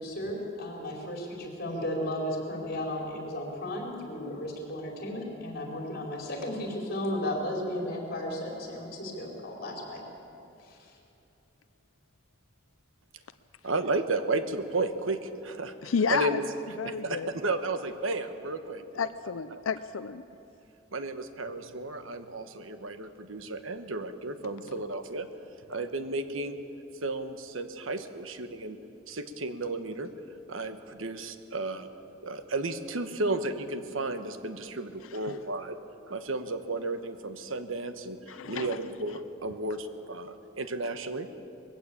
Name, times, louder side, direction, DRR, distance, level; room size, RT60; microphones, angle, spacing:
voice 1, 0.0-10.0 10.6-10.9, left 1 dB, 50° left, 0 dB, 4.7 m, -34 dB
voice 2, 13.6-16.4 16.8-19.1 19.5-19.6 20.9-25.3 25.7-26.6 27.0-28.8 29.1-30.1 30.5-31.9 32.2-35.8 36.1-38.2 38.5-41.3, right 2 dB, 85° right, 9 dB, 1.2 m, -33 dB
voice 3, 15.8-16.4 16.8-17.3 19.0-20.2 35.3-35.4 38.3-38.8, left 6 dB, 90° left, 12 dB, 0.5 m, -31 dB
21.0 x 15.5 x 8.6 m, 2.8 s
head